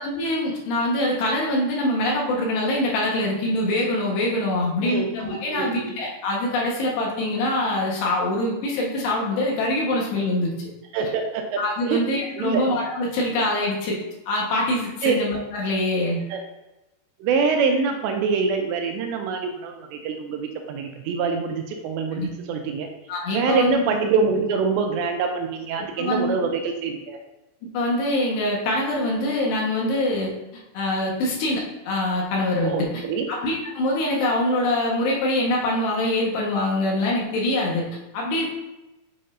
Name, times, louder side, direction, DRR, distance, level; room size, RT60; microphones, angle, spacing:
voice 1, 0.0-10.5 11.6-14.0 14.3-16.2 22.2-22.3 23.1-23.8 26.0-26.4 27.7-30.3 30.8-33.0 33.3-37.8 38.1-38.5, left 1 dB, 75° left, -3 dB, 3.3 m, -24 dB
voice 2, 4.8-6.0 10.9-12.0 12.4-12.6 15.0-15.2 16.3-16.4 17.2-22.9 23.3-27.2 32.6-33.3, right 5 dB, 80° right, 4 dB, 2.8 m, -25 dB
7.6 x 7.4 x 2.6 m, 1.0 s
omnidirectional pair, 5.2 m